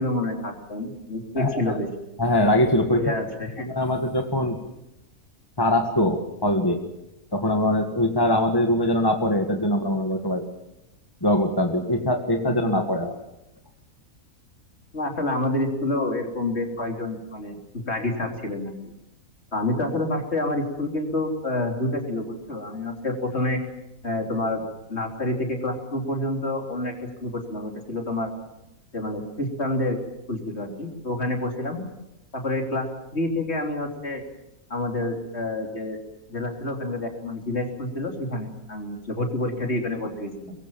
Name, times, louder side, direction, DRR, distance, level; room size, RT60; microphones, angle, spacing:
voice 1, 0.0-1.9 2.9-3.7 12.6-12.7 14.9-17.6 17.9-18.7 19.5-23.6 24.0-24.6 24.9-26.9 27.2-28.3 28.9-30.0 30.3-31.8 32.3-32.9 33.1-34.2 34.7-36.0 36.3-40.5, left 1 dB, 50° left, 2 dB, 4.0 m, -28 dB
voice 2, 1.4-1.8 2.2-3.1 3.6-4.6 5.6-6.8 7.3-10.4 11.2-13.2, left 1 dB, 15° left, 4 dB, 1.8 m, -22 dB
23.5 x 22.5 x 7.5 m, 0.88 s
omnidirectional pair, 1.5 m